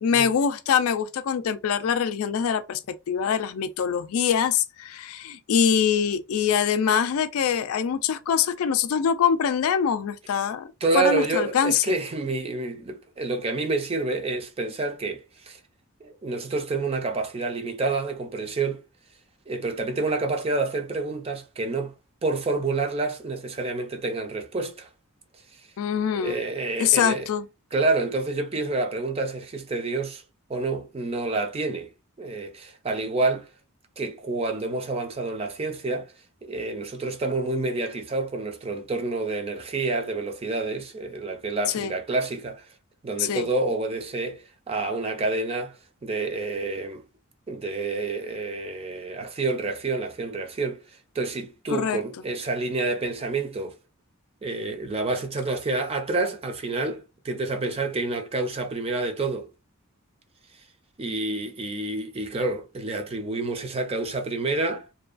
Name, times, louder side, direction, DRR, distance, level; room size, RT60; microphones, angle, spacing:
voice 1, 0.0-2.8 3.1-11.8 25.8-26.4 26.8-27.5 41.7-41.9 43.2-43.5 51.7-52.0, left 7 dB, 75° left, 0.4 m, -24 dB
voice 2, 10.8-15.6 16.0-18.8 19.5-21.9 22.2-24.9 26.1-27.3 27.7-30.2 30.5-31.9 32.2-33.5 34.0-36.1 36.4-42.7 43.0-45.8 46.0-47.0 47.5-50.8 51.1-53.8 54.4-59.5 61.0-64.9, right 3 dB, 25° right, 0.4 m, -28 dB
2.7 x 2.3 x 2.4 m
head